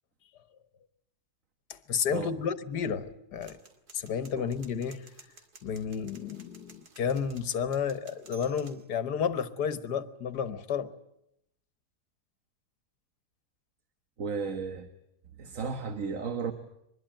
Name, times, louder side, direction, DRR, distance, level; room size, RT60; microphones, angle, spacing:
voice 1, 1.7-3.6 3.9-5.0 5.6-10.9, left 7 dB, 85° left, 1.7 m, -31 dB
sound 1, 3.4-8.9, right 4 dB, 70° right, 2.8 m, -55 dB
voice 2, 14.2-14.9 15.4-16.5, right 5 dB, 55° right, 1.6 m, -34 dB
24.0 x 21.0 x 8.9 m
omnidirectional pair, 1.7 m